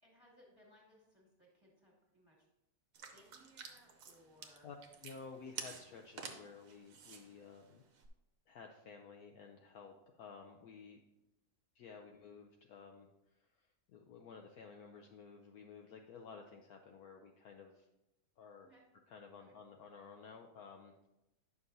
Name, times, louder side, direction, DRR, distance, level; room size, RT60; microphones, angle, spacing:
voice 1, 0.0-2.5 3.1-4.7 12.0-12.2 18.6-18.8 19.4-19.5, equal, 15° right, -4 dB, 1.8 m, -65 dB
sound 1, 2.9-8.1, right 6 dB, 60° right, 1.1 m, -51 dB
voice 2, 5.0-7.9 8.5-11.0 11.7-17.9 18.4-18.7 19.1-21.1, left 5 dB, 70° left, 2 dB, 1.0 m, -54 dB
9.2 x 6.0 x 2.6 m, 0.92 s
omnidirectional pair, 1.9 m